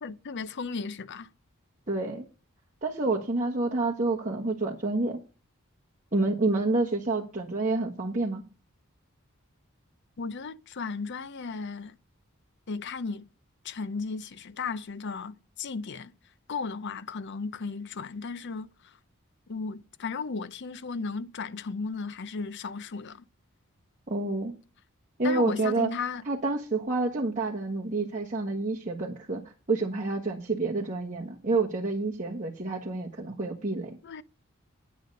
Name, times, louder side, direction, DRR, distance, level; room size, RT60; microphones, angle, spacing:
voice 1, 0.0-1.3 10.2-12.0 12.7-13.3 13.6-16.1 16.5-19.0 19.5-23.2 25.2-26.2 34.0-34.2, left 4 dB, 55° left, 0.6 m, -35 dB
voice 2, 1.9-2.2 2.8-5.2 6.1-8.4 24.1-24.5 25.2-25.9 26.3-34.0, right 3 dB, 40° right, 1.4 m, -28 dB
9.7 x 9.1 x 5.4 m
head